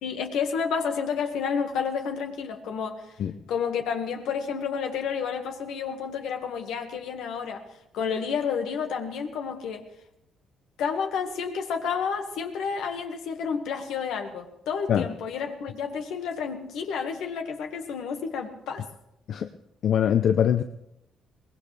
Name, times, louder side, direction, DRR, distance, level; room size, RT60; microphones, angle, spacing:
voice 1, 0.0-3.0 3.5-7.6 7.9-9.8 10.8-18.8, left 6 dB, 85° left, 5 dB, 1.7 m, -30 dB
voice 2, 19.8-20.6, left 9 dB, 65° left, 8 dB, 0.7 m, -22 dB
22.5 x 19.0 x 3.4 m, 0.83 s
cardioid pair, 90°, 0 cm